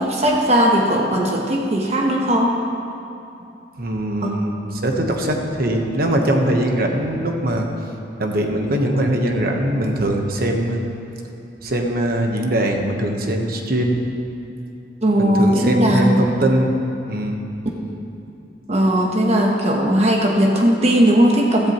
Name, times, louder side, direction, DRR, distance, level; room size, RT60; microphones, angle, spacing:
voice 1, 0.0-2.6 4.2-4.3 15.0-16.2 18.7-21.7, equal, 40° right, -1 dB, 1.1 m, -17 dB
voice 2, 3.8-7.7 8.2-10.8 11.6-14.1 15.2-16.8 17.1-17.4, right 1 dB, 60° right, 2 dB, 1.2 m, -21 dB
15.0 x 13.5 x 3.1 m, 2.7 s
head